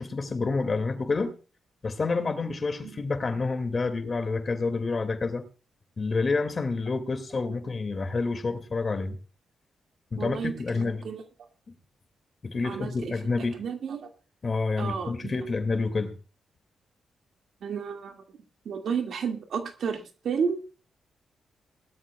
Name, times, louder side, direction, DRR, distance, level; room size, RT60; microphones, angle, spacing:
voice 1, 0.0-1.3 1.8-5.4 6.0-9.2 10.1-11.1 12.4-13.6 14.4-16.1, left 3 dB, 40° left, 2.4 m, -28 dB
voice 2, 10.2-11.2 12.6-14.1 14.8-15.3 17.6-18.2 18.6-20.6, right 6 dB, 75° right, 2.3 m, -32 dB
20.5 x 13.0 x 2.4 m
cardioid pair, 80°, 0 cm